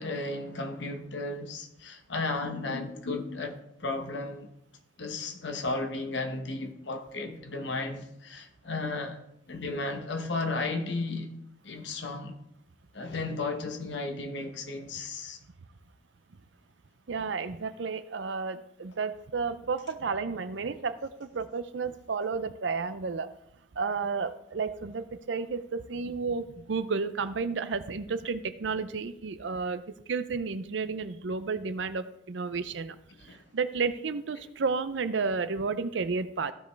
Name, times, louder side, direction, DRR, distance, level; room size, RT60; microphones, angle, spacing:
voice 1, 0.0-4.5 5.0-9.2 9.5-11.3 11.6-12.4 12.9-15.4 33.3-33.4, left 3 dB, 65° left, 1.0 m, -34 dB
voice 2, 17.1-23.3 23.8-29.8 30.1-33.0 33.2-36.5, right 4 dB, 70° right, 0.6 m, -32 dB
15.0 x 5.2 x 3.4 m
head